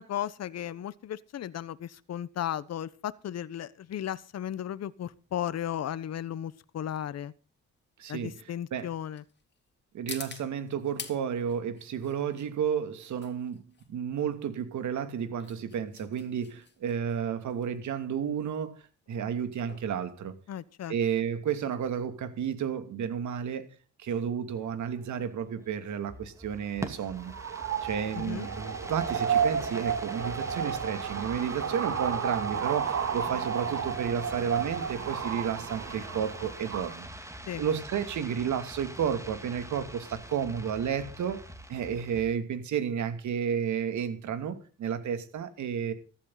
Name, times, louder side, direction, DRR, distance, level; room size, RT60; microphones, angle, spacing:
voice 1, 0.0-7.3 8.1-9.2 20.5-20.9 28.1-28.5 37.5-37.6, left 10 dB, 55° left, 17 dB, 1.1 m, -35 dB
sound 1, 4.8-21.1, left 5 dB, 35° left, 3.0 m, -49 dB
voice 2, 8.0-8.3 8.7-8.9 9.9-13.6 13.9-18.7 19.1-20.3 20.9-23.7 24.0-27.3 27.8-41.4 41.7-45.9, right 8 dB, 70° right, 10 dB, 2.7 m, -32 dB
sound 2, 24.5-42.2, right 1 dB, 10° right, 2.7 m, -44 dB
sound 3, 27.2-36.9, right 7 dB, 55° right, 2.5 m, -32 dB
15.0 x 14.0 x 4.0 m, 0.37 s
cardioid pair, 90°, 30 cm